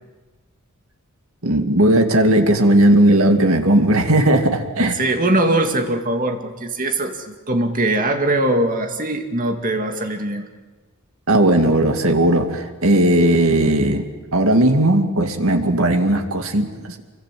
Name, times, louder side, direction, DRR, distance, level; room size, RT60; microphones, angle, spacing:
voice 1, 1.4-5.0 11.3-14.0 14.3-17.0, right 1 dB, 70° right, 6 dB, 2.3 m, -16 dB
voice 2, 4.9-10.4, right 1 dB, 40° right, 5 dB, 2.2 m, -21 dB
27.0 x 24.0 x 7.6 m, 1.3 s
head